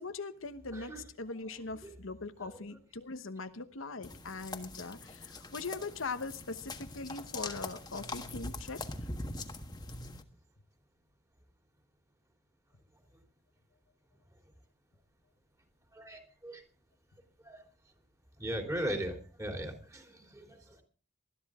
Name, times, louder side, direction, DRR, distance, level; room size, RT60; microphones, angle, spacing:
voice 1, 0.0-8.8, left 3 dB, 80° left, 9 dB, 1.1 m, -41 dB
sound 1, 4.0-10.2, left 2 dB, 20° left, 1.3 m, -42 dB
voice 2, 15.9-16.6 17.4-17.6 18.4-20.8, right 1 dB, 15° right, 3 dB, 2.9 m, -38 dB
20.5 x 13.0 x 3.6 m, 0.38 s
head